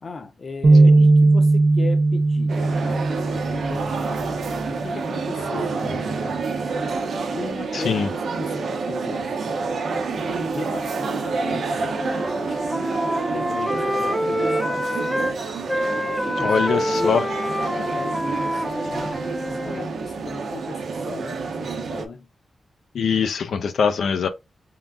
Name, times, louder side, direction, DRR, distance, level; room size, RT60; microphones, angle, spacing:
voice 1, 0.0-4.3 4.7-6.4 7.3-9.3 10.2-12.6 13.3-14.9 15.1-15.5 16.2-17.2 17.7-19.2 19.4-22.3, left 3 dB, 45° left, 0.7 m, -36 dB
sound 1, 0.6-4.9 5.4-5.6 6.4-6.9, right 2 dB, 45° right, 0.6 m, -18 dB
sound 2, 2.5-22.1, right 4 dB, 80° right, 0.7 m, -28 dB
voice 2, 7.7-8.1 16.4-17.3 22.9-24.3, left 6 dB, 90° left, 0.4 m, -22 dB
Wind instrument woodwind instrument, 11.8-15.3 15.7-19.9, equal, 5° right, 0.7 m, -26 dB
3.7 x 3.6 x 2.3 m
wide cardioid pair, 140°, 0 cm